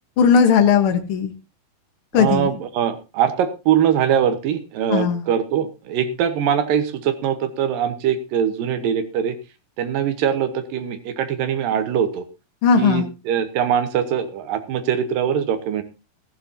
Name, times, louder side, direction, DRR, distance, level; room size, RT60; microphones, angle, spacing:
voice 1, 0.2-1.3 2.1-2.5 4.9-5.2 12.6-13.1, left 6 dB, 75° left, 7 dB, 1.2 m, -17 dB
voice 2, 2.1-9.4 9.8-12.2 12.8-15.8, right 9 dB, 70° right, 8 dB, 2.6 m, -22 dB
15.0 x 14.0 x 2.8 m, 0.29 s
omnidirectional pair, 4.4 m